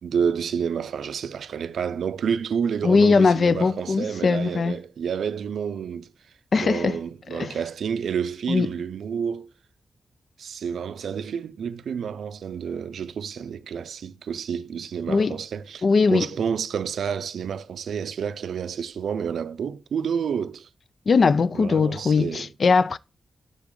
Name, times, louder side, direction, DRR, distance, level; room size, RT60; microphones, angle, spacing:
voice 1, 0.0-6.1 6.5-9.5 10.4-20.7 21.5-22.5, right 7 dB, 80° right, 0.4 m, -29 dB
voice 2, 2.8-4.8 6.5-7.0 7.3-7.6 8.5-8.7 15.1-15.4 15.8-16.3 21.1-23.0, left 4 dB, 50° left, 0.3 m, -20 dB
9.6 x 3.5 x 3.8 m
wide cardioid pair, 140°, 0 cm